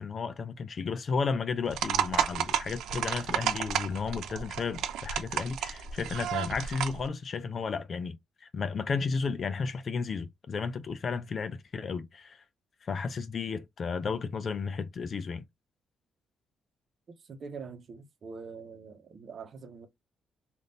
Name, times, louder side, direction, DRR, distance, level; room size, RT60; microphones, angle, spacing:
voice 1, 0.0-12.4 12.8-15.4, left 5 dB, 45° left, 0.5 m, -33 dB
sound 1, 1.7-7.0, right 9 dB, 80° right, 0.5 m, -32 dB
voice 2, 17.2-19.9, right 5 dB, 50° right, 0.8 m, -44 dB
3.5 x 2.5 x 2.6 m
cardioid pair, 90°, 0 cm